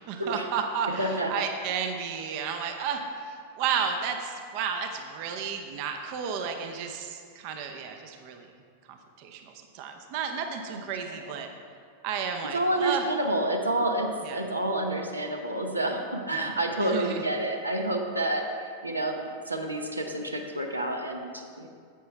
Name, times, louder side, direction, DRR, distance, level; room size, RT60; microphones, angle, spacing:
voice 1, 0.1-8.5 8.9-9.4 9.7-11.5 12.0-13.0 14.2-14.4 16.3-17.2, right 6 dB, 45° right, 5 dB, 0.7 m, -32 dB
voice 2, 1.0-1.3 10.7-10.8 12.5-19.2 19.5-21.7, right 1 dB, 80° right, 3 dB, 0.8 m, -29 dB
10.0 x 7.8 x 3.3 m, 2.1 s
figure-of-eight pair, 90°, 0 cm